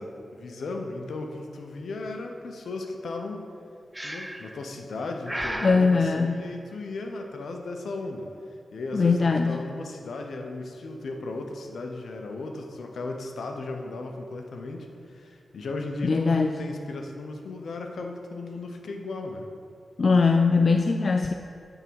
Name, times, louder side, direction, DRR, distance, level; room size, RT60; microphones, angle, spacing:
voice 1, 0.0-3.5 4.0-8.3 8.7-9.2 9.4-19.5, left 2 dB, 80° left, 3 dB, 0.8 m, -36 dB
Breathing, 3.9-4.6 5.3-5.9, right 1 dB, 10° right, 0.6 m, -33 dB
voice 2, 5.6-6.4 8.9-9.6 16.0-16.5 20.0-21.3, left 4 dB, 55° left, 5 dB, 0.3 m, -21 dB
8.8 x 3.7 x 6.2 m, 2.5 s
cardioid pair, 55°, 0 cm